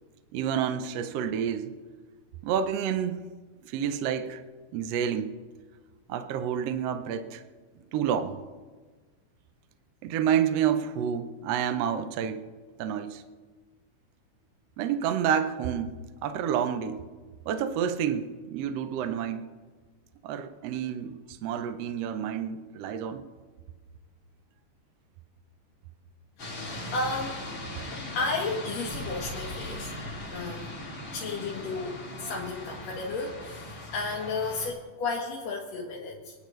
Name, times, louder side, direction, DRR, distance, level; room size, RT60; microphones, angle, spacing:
voice 1, 0.3-1.8 2.4-3.3 3.6-4.4 4.7-5.3 6.1-7.4 7.9-8.4 10.0-12.4 12.8-13.2 14.8-15.9 16.2-17.0 17.5-19.4 20.2-23.2, right 8 dB, 75° right, 9 dB, 1.5 m, -29 dB
sound 1, 26.4-34.7, left 1 dB, 40° left, 3.2 m, -39 dB
voice 2, 26.9-27.4 28.1-29.9 30.3-30.8 31.1-36.3, left 3 dB, 60° left, -4 dB, 2.5 m, -33 dB
27.5 x 10.5 x 3.2 m, 1.4 s
omnidirectional pair, 3.7 m